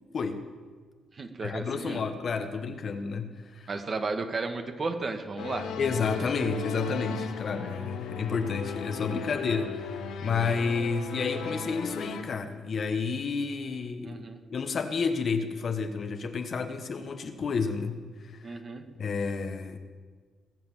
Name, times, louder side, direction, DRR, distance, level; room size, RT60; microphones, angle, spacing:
voice 1, 0.1-0.4 1.4-3.7 5.8-14.2 14.5-18.5 19.0-19.8, left 5 dB, 50° left, 7 dB, 1.3 m, -31 dB
voice 2, 1.1-2.0 3.7-5.7 6.2-6.3 14.0-14.4 18.4-18.8, right 3 dB, 40° right, 5 dB, 1.6 m, -34 dB
sound 1, 5.4-12.2, left 5 dB, 90° left, 1.3 m, -36 dB
20.0 x 7.8 x 7.5 m, 1.5 s
cardioid pair, 90°, 0 cm